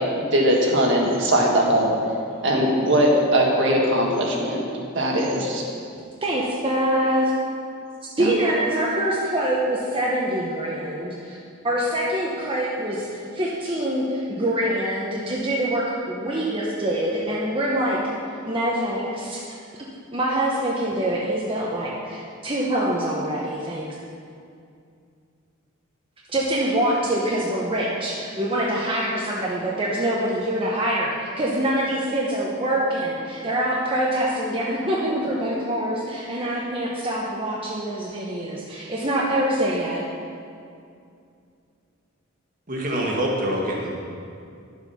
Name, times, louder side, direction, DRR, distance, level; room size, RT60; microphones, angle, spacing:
voice 1, 0.3-1.9 2.4-4.6 5.0-5.6 8.2-8.4, equal, 60° right, -1 dB, 1.8 m, -20 dB
voice 2, 6.2-7.3 8.2-11.4 11.6-18.0 18.4-19.4 20.1-23.8 26.3-40.0, right 1 dB, 25° right, -4 dB, 1.1 m, -25 dB
voice 3, 42.7-43.9, equal, 40° right, -1 dB, 1.7 m, -25 dB
11.5 x 7.3 x 5.7 m, 2.4 s
head